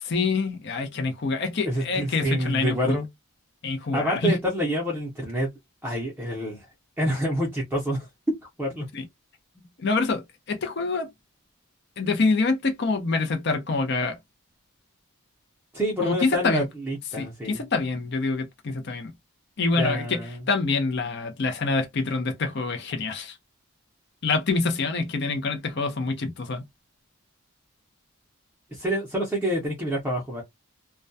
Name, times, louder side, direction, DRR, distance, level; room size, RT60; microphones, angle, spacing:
voice 1, 0.0-3.0 3.6-4.4 8.9-9.0 9.8-11.1 12.0-14.2 16.0-16.6 17.1-19.1 19.6-20.2 20.5-23.4 24.2-26.6, left 3 dB, 50° left, 0.6 m, -26 dB
voice 2, 1.6-3.1 3.9-5.5 5.8-6.7 7.0-8.1 8.4-8.9 9.6-9.7 15.7-17.6 19.7-20.4 28.7-30.4, equal, 10° right, 0.6 m, -27 dB
2.2 x 2.2 x 2.5 m
head